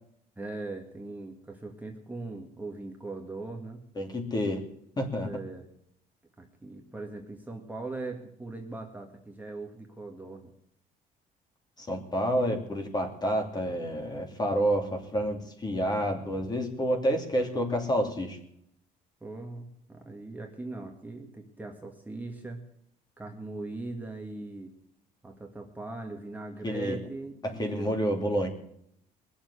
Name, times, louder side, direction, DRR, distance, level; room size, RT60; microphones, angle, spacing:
voice 1, 0.4-3.8 5.2-5.7 6.4-10.5 19.2-22.6 23.2-24.7 25.2-28.0, right 3 dB, 10° right, 1 dB, 1.9 m, -40 dB
voice 2, 4.0-4.6 5.0-5.3 11.8-18.4 26.6-27.0 27.4-28.5, equal, 25° left, 3 dB, 2.8 m, -29 dB
20.5 x 7.2 x 8.2 m, 0.73 s
cardioid pair, 110°, 17 cm